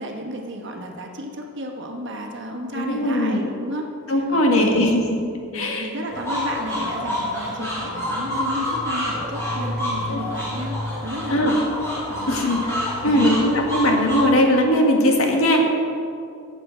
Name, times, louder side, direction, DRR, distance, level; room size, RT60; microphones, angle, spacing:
voice 1, 0.0-4.8 5.5-10.8 11.0-11.7 12.1-12.5 13.0-13.4, equal, 55° right, 2 dB, 1.3 m, -32 dB
voice 2, 2.7-3.5 4.1-5.2 5.5-5.9 10.1-10.2 11.3-11.5 12.3-12.6 13.0-15.7, left 1 dB, 70° left, 1 dB, 1.5 m, -19 dB
sound 1, 6.1-14.2, left 1 dB, 10° left, 3.0 m, -27 dB
15.0 x 7.6 x 4.5 m, 2.5 s
head